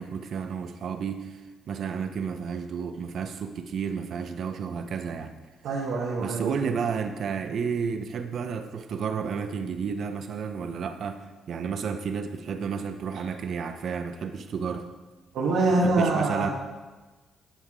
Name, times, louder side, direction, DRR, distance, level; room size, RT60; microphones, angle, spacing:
voice 1, 0.0-1.4 1.7-5.4 6.2-14.9 15.8-16.5, right 6 dB, 60° right, 8 dB, 0.8 m, -31 dB
voice 2, 5.6-6.8 15.3-16.5, right 2 dB, 80° right, -4 dB, 1.4 m, -25 dB
10.0 x 5.7 x 4.9 m, 1.2 s
cardioid pair, 90°, 0 cm